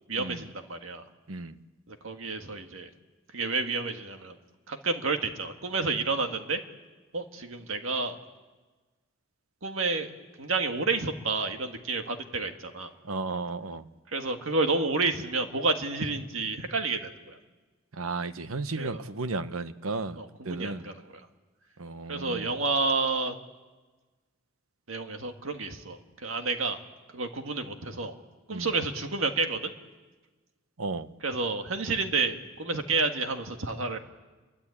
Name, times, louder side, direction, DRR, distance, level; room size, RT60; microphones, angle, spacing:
voice 1, 0.1-1.0 1.9-2.9 3.3-4.4 4.7-6.6 7.1-8.2 9.6-10.1 10.4-12.9 14.1-17.4 18.8-19.0 20.2-21.1 22.1-23.3 24.9-26.8 27.1-28.2 28.5-29.7 31.2-34.0, right 3 dB, 70° right, 5 dB, 2.1 m, -30 dB
voice 2, 1.3-1.6 13.0-13.9 17.9-20.2 20.4-20.9 21.8-22.5 28.5-28.7 30.8-31.1, right 3 dB, 90° right, 12 dB, 1.0 m, -34 dB
28.5 x 23.0 x 8.7 m, 1.3 s
head